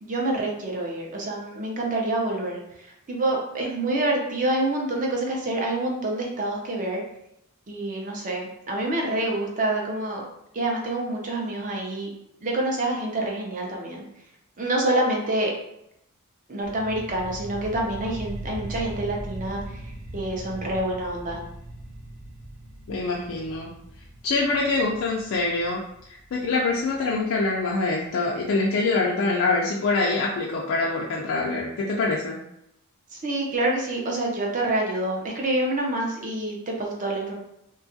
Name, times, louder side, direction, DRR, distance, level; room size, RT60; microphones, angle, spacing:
voice 1, 0.0-7.0 7.7-10.2 10.5-12.1 12.4-14.0 14.6-15.5 16.5-19.8 20.1-21.4 33.1-37.3, right 2 dB, 35° right, -1 dB, 0.5 m, -27 dB
sound 1, 16.6-27.6, right 1 dB, 85° right, 0.6 m, -40 dB
voice 2, 22.9-23.7 24.2-32.4, left 3 dB, 60° left, -3 dB, 0.4 m, -25 dB
2.7 x 2.3 x 2.6 m, 0.80 s
head